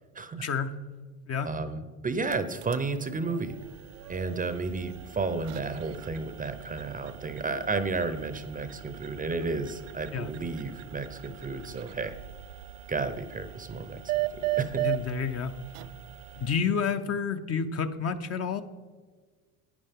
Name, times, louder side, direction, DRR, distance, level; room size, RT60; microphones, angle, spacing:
voice 1, 0.4-0.7 1.3-1.5 10.1-10.3 14.8-15.5 16.4-18.6, left 6 dB, 35° left, 8 dB, 0.6 m, -29 dB
voice 2, 1.4-3.5 4.1-12.1 12.9-14.1 14.6-14.9, right 3 dB, 20° right, 10 dB, 0.6 m, -32 dB
sound 1, 2.1-16.6, right 15 dB, 90° right, 0.7 m, -38 dB
11.0 x 9.4 x 3.6 m, 1.5 s
supercardioid pair, 110°, 45 cm